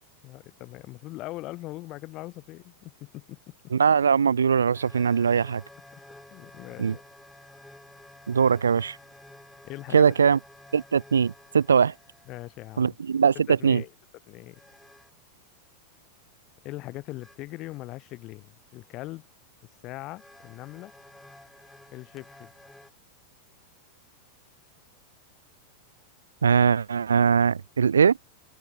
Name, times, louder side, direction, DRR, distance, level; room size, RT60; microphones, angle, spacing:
voice 1, 0.2-3.4 6.3-7.0 9.6-10.1 12.3-13.0 13.5-13.9 14.3-14.6 16.6-19.3 19.8-20.9 21.9-22.5, left 18 dB, 40° left, 1.7 m, -40 dB
voice 2, 3.7-5.6 6.8-6.9 8.3-9.0 9.9-10.4 10.7-11.9 12.8-13.8 26.4-28.2, right 6 dB, 70° right, 0.5 m, -21 dB
sound 1, 4.7-12.9 14.5-15.2 17.2-17.4 19.4-19.5 20.2-22.9, left 1 dB, 5° left, 2.6 m, -52 dB
open air
figure-of-eight pair, 90°, 0 cm